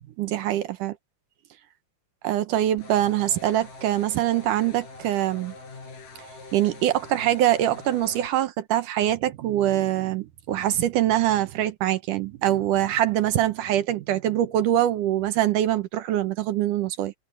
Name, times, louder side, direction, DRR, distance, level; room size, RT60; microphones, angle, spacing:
voice 1, 0.2-1.0 2.2-5.5 6.5-17.1, right 12 dB, 70° right, 2.0 m, -24 dB
sound 1, 2.8-8.3, left 3 dB, 55° left, 6.5 m, -43 dB
omnidirectional pair, 4.6 m